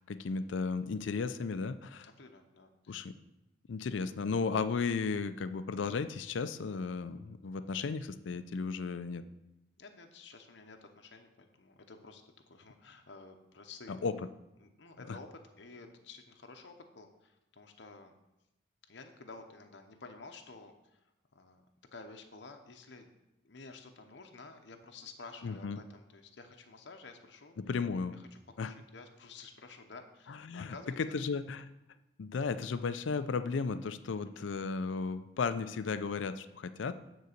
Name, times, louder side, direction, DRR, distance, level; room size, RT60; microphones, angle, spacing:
voice 1, 0.1-2.1 2.9-3.1 3.7-9.2 13.9-14.3 15.1-15.2 25.4-25.8 27.6-28.2 28.6-28.7 30.3-31.7 32.2-36.9, left 4 dB, 85° left, 12 dB, 0.4 m, -35 dB
voice 2, 2.2-3.0 4.1-4.2 9.8-14.1 14.6-18.1 18.9-21.0 21.3-21.6 21.9-23.1 23.4-27.6 28.1-28.3 28.6-31.2 34.4-34.5, left 3 dB, 70° left, 4 dB, 0.8 m, -52 dB
9.3 x 3.9 x 6.6 m, 0.92 s
head